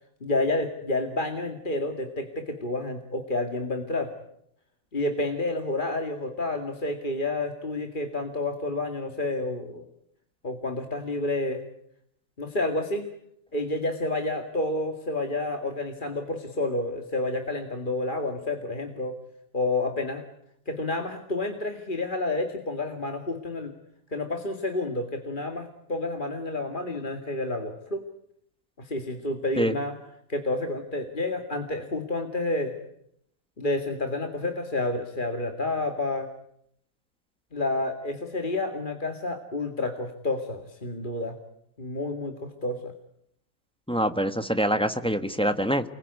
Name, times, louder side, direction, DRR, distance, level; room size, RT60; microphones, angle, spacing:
voice 1, 0.2-4.1 4.9-9.9 10.4-11.6 12.4-13.1 13.5-19.1 19.5-20.2 20.7-23.7 24.1-28.0 28.8-30.0 30.3-32.7 33.6-36.3 37.5-41.3 41.8-42.9, left 2 dB, 30° left, 5 dB, 2.2 m, -29 dB
voice 2, 43.9-45.8, equal, 5° left, 9 dB, 1.1 m, -25 dB
29.5 x 21.0 x 9.6 m, 0.74 s
omnidirectional pair, 1.8 m